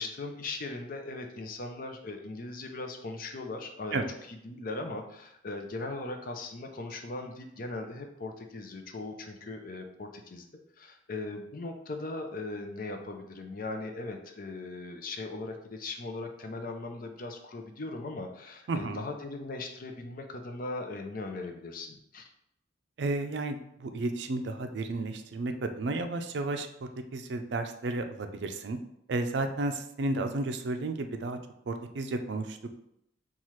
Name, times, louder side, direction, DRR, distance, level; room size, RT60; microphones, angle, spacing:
voice 1, 0.0-10.5 10.8-22.3, left 2 dB, 50° left, 4 dB, 0.5 m, -39 dB
voice 2, 18.7-19.0 23.0-28.8 29.1-31.4 31.7-32.8, right 2 dB, 65° right, 7 dB, 0.4 m, -32 dB
5.6 x 2.4 x 3.1 m, 0.77 s
head